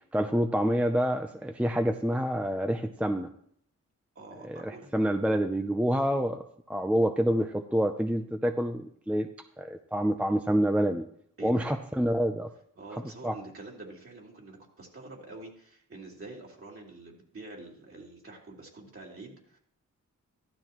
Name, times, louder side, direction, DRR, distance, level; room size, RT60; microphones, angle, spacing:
voice 1, 0.1-3.3 4.5-6.4 6.7-9.3 9.6-11.0 11.4-12.5 13.2-13.3, equal, 5° right, 6 dB, 0.5 m, -27 dB
voice 2, 4.1-4.9 5.9-6.1 11.4-11.7 12.8-19.6, right 2 dB, 45° right, -2 dB, 3.1 m, -46 dB
14.5 x 12.0 x 3.0 m, 0.65 s
wide cardioid pair, 120°, 31 cm